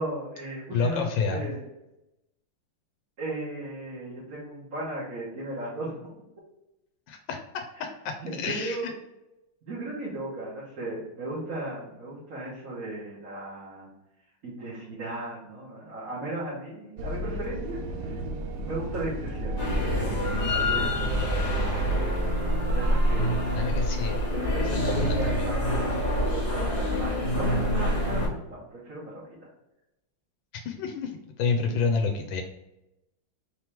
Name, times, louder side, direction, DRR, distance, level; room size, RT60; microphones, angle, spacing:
voice 1, 0.0-1.6 3.2-6.1 7.8-7.9 8.2-8.9 9.7-13.9 14.4-18.2 18.6-23.4 24.3-29.5, right 2 dB, 50° right, -10 dB, 1.9 m, -36 dB
voice 2, 0.7-1.5 7.1-8.1 8.4-8.8 23.5-24.3 24.8-25.5 30.6-31.1 31.4-32.4, left 5 dB, 85° left, 3 dB, 1.4 m, -29 dB
sound 1, 17.0-22.0, right 1 dB, 75° right, 0.8 m, -32 dB
sound 2, 19.6-28.3, equal, 30° left, 0.9 m, -26 dB
4.5 x 3.0 x 3.4 m, 0.91 s
omnidirectional pair, 2.0 m